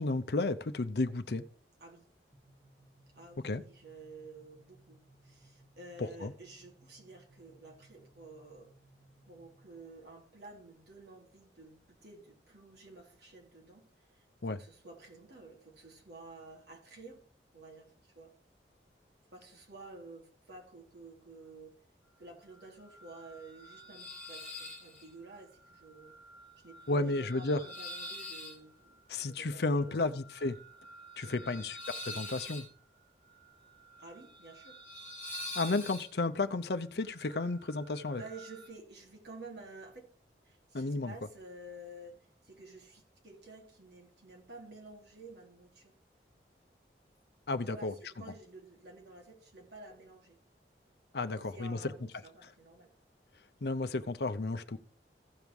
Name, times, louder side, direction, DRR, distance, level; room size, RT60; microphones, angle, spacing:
voice 1, 0.0-1.4 3.4-3.6 6.0-6.3 14.4-14.6 26.9-27.6 29.1-30.6 31.2-31.8 32.0-32.7 35.6-38.2 40.7-41.1 47.5-47.9 51.1-51.9 53.6-54.8, left 2 dB, 70° left, 0.7 m, -32 dB
sound 1, 2.3-9.9, right 1 dB, 20° right, 2.0 m, -63 dB
voice 2, 3.2-5.0 5.2-8.7 9.3-13.9 14.2-14.3 14.6-17.3 17.5-18.3 19.3-21.8 22.2-26.1 26.6-30.1 31.2-31.7 34.0-34.8 38.1-40.1 40.4-45.9 47.5-50.4 51.3-52.9, right 2 dB, 75° right, 3.5 m, -51 dB
sound 2, 22.5-38.7, left 1 dB, 10° left, 2.1 m, -47 dB
15.5 x 5.3 x 4.7 m
head